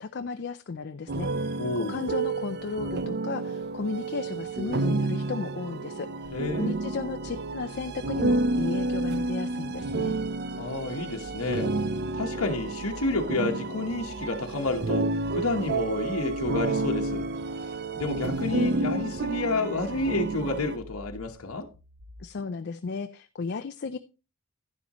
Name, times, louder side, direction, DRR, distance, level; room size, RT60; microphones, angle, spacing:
voice 1, 0.0-1.6 1.9-10.1 22.2-24.0, left 4 dB, 50° left, 0.4 m, -35 dB
sound 1, 1.1-20.8, right 2 dB, 50° right, 0.6 m, -30 dB
voice 2, 1.6-2.0 6.3-6.8 10.6-11.7 12.1-15.1 15.3-17.3 17.9-21.7, left 3 dB, 75° left, 1.2 m, -30 dB
sound 2, 6.7-22.2, left 1 dB, 85° right, 2.1 m, -48 dB
11.0 x 10.0 x 3.0 m
head